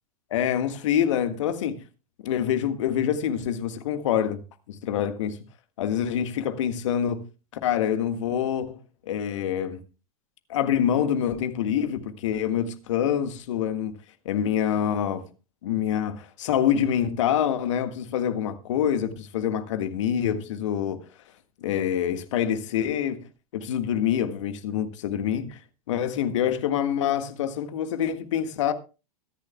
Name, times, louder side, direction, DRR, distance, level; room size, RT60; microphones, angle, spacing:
voice 1, 0.3-1.8 2.2-4.4 4.7-5.4 5.8-7.2 7.6-8.8 9.1-9.8 10.5-14.0 14.2-15.3 15.6-21.0 21.6-23.2 23.5-25.6 25.9-28.7, left 9 dB, 55° left, 1.6 m, -26 dB
23.5 x 10.5 x 2.2 m
figure-of-eight pair, 95°, 19 cm